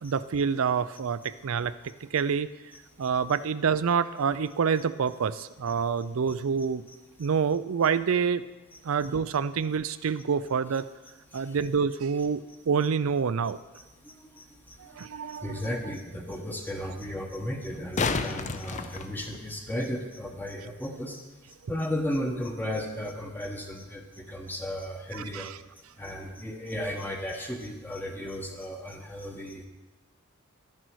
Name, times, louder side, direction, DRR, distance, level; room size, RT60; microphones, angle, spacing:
voice 1, 0.0-1.7 2.1-2.5 3.0-6.8 7.2-8.4 8.8-10.9 11.3-13.6 14.8-15.6 25.1-25.6, right 6 dB, 70° right, 15 dB, 0.4 m, -27 dB
voice 2, 0.9-1.3 2.7-3.4 4.7-4.8 5.7-5.8 6.3-6.4 6.9-7.3 8.7-9.4 9.9-10.2 11.3-11.7 12.8-12.9 13.7-21.2 21.7-25.5 26.0-29.7, left 1 dB, 10° left, 2 dB, 1.0 m, -36 dB
sound 1, 14.7-14.8 17.6-19.7 22.6-22.7, left 4 dB, 35° left, 0.5 m, -31 dB
12.0 x 10.5 x 4.7 m, 1.2 s
head